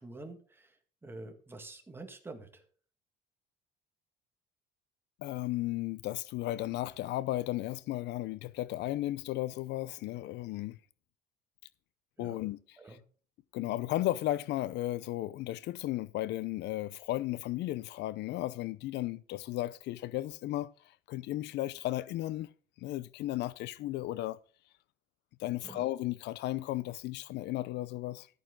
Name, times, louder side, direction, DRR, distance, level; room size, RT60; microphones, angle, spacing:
voice 1, 0.0-2.6 12.2-12.5 12.8-13.0 25.6-25.9, right 2 dB, 10° right, 2.0 m, -47 dB
voice 2, 5.2-10.8 12.2-13.0 13.5-22.5 22.8-24.4 25.4-28.3, left 15 dB, 65° left, 0.6 m, -35 dB
13.5 x 9.1 x 3.9 m
cardioid pair, 145°, 19 cm